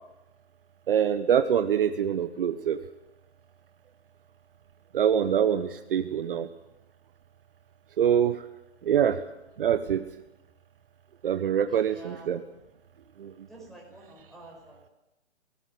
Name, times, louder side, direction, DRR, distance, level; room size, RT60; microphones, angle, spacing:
voice 1, 0.9-2.8 4.9-6.5 8.0-8.4 8.8-9.2 9.6-10.0 11.2-12.4 13.2-13.3, right 9 dB, 55° right, 10 dB, 1.2 m, -24 dB
voice 2, 11.7-12.3 13.5-14.8, right 1 dB, ahead, -1 dB, 5.6 m, -49 dB
20.5 x 18.5 x 7.8 m, 0.94 s
hypercardioid pair, 145°, 34 cm